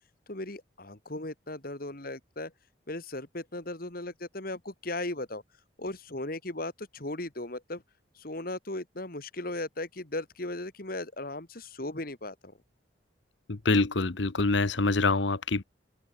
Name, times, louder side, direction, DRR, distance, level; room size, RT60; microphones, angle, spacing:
voice 1, 0.3-2.5 2.9-5.4 5.8-7.8 8.2-12.5, left 2 dB, 50° left, 2.3 m, -37 dB
voice 2, 13.5-15.6, left 3 dB, 65° left, 1.1 m, -25 dB
head